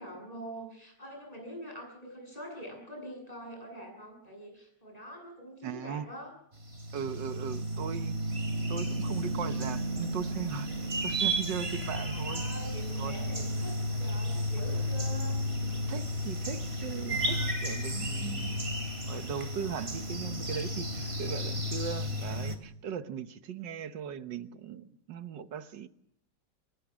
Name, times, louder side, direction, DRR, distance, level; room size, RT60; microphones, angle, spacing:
voice 1, 0.0-6.3 11.9-13.7 14.0-15.4, equal, 20° left, 8.2 m, -44 dB
voice 2, 5.6-6.1 6.9-8.4 8.7-12.4 13.0-13.2 15.9-18.7 19.1-25.9, right 8 dB, 85° right, 1.8 m, -39 dB
sound 1, 6.6-22.6, equal, 35° right, 3.1 m, -33 dB
26.0 x 22.5 x 6.2 m
omnidirectional pair, 1.9 m